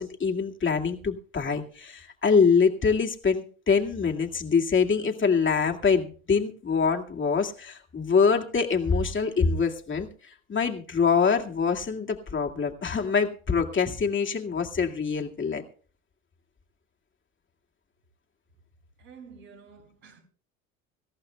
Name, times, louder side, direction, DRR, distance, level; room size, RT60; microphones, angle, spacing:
voice 1, 0.0-10.1 10.5-15.6, left 5 dB, 30° left, 2.2 m, -24 dB
voice 2, 19.0-20.2, right 6 dB, 80° right, 5.8 m, -49 dB
25.5 x 14.5 x 2.3 m
hypercardioid pair, 65°, 40 cm